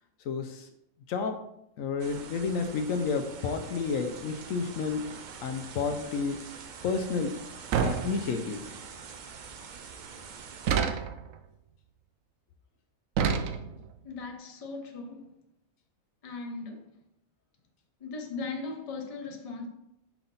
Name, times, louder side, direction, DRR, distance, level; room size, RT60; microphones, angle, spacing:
voice 1, 0.2-0.7 1.1-1.4 1.8-5.1 5.4-6.4 6.8-7.4 7.8-8.6, left 5 dB, 70° left, 1.0 m, -30 dB
sound 1, 2.0-10.8, right 6 dB, 85° right, 0.4 m, -45 dB
sound 2, 7.7-8.6 10.7-11.3 13.2-13.9, right 7 dB, 70° right, 1.0 m, -28 dB
voice 2, 14.0-15.3 16.2-16.9 18.0-19.7, left 3 dB, 30° left, 0.7 m, -38 dB
5.8 x 4.8 x 4.0 m
omnidirectional pair, 1.5 m